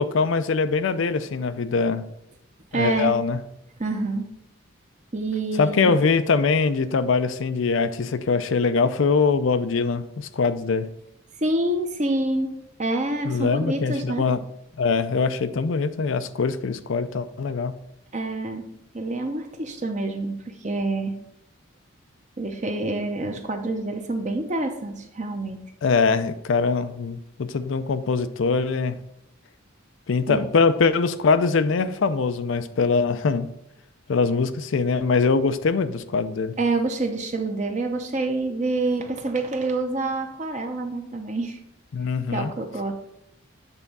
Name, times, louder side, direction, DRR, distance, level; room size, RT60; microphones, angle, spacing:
voice 1, 0.0-2.1 2.7-3.4 5.6-10.9 13.2-14.4 14.8-17.7 25.8-29.0 30.1-33.5 34.1-36.5 41.9-42.5, left 4 dB, 70° left, 0.4 m, -22 dB
voice 2, 2.7-3.1 3.8-4.2 5.1-5.9 11.4-12.5 12.8-14.2 18.1-18.6 18.9-20.3 20.6-21.1 22.4-25.6 30.3-30.4 36.6-41.6 42.3-42.9, right 2 dB, 35° right, 0.7 m, -27 dB
8.1 x 3.5 x 5.3 m
head